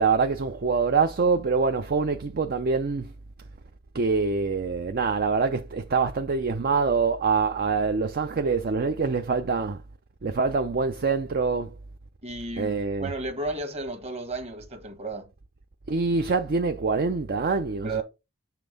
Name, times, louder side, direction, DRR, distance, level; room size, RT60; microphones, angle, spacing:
voice 1, 0.0-3.1 3.9-9.8 10.2-11.7 12.6-13.1 15.9-18.0, right 4 dB, 45° right, 0.5 m, -25 dB
voice 2, 12.2-15.3 17.8-18.0, right 2 dB, 30° right, 1.4 m, -33 dB
7.4 x 3.4 x 5.1 m
head